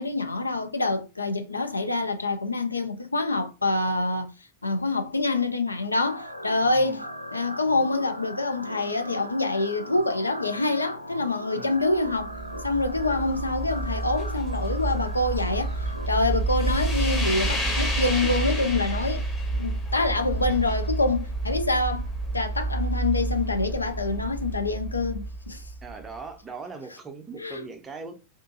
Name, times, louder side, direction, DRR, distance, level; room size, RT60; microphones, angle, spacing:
voice 1, 0.0-4.3 4.6-7.0 7.3-12.3 12.6-19.2 19.5-22.1 22.3-25.6 27.4-27.6, left 2 dB, 80° left, 0.4 m, -26 dB
sound 1, 6.1-16.1, equal, 90° right, 0.3 m, -39 dB
sound 2, 12.0-26.1, right 2 dB, 20° left, 0.8 m, -29 dB
voice 2, 25.8-28.1, right 4 dB, 15° right, 0.5 m, -40 dB
2.5 x 2.3 x 2.5 m
figure-of-eight pair, 90°, 0 cm